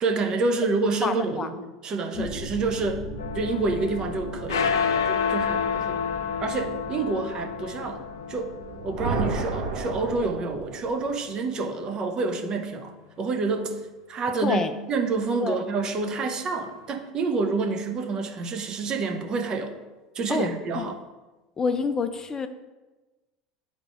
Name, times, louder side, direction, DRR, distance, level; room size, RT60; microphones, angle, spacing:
voice 1, 0.0-3.1 3.3-6.0 6.4-8.0 8.3-8.5 8.8-13.8 14.1-14.6 14.9-19.7 20.1-21.0, right 3 dB, 35° right, 5 dB, 0.8 m, -28 dB
voice 2, 1.0-1.5 2.2-2.3 14.4-14.7 15.4-15.6 20.3-20.5 20.7-20.9 21.6-22.5, left 5 dB, 25° left, 9 dB, 0.4 m, -27 dB
sound 1, 2.1-9.3, right 1 dB, 80° right, 1.2 m, -40 dB
sound 2, 3.2-11.7, left 7 dB, 70° left, 0.6 m, -30 dB
sound 3, 8.5-11.1, right 3 dB, 60° right, 1.3 m, -31 dB
10.5 x 3.6 x 2.5 m, 1.2 s
figure-of-eight pair, 75°, 2 cm